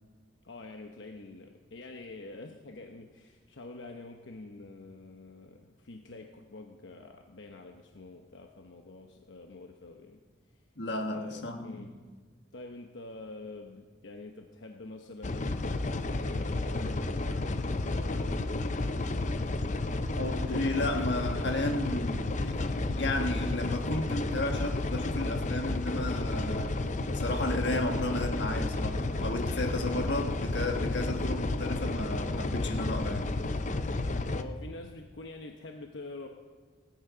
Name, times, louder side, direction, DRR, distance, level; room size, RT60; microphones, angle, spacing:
voice 1, 0.4-10.2 11.0-11.9 12.5-18.6 33.9-36.3, left 2 dB, 80° left, 0.9 m, -46 dB
voice 2, 10.8-11.9 20.2-33.3, left 2 dB, 65° left, 1.5 m, -33 dB
sound 1, 15.2-34.4, left 2 dB, 40° left, 0.6 m, -32 dB
17.5 x 10.5 x 5.1 m
head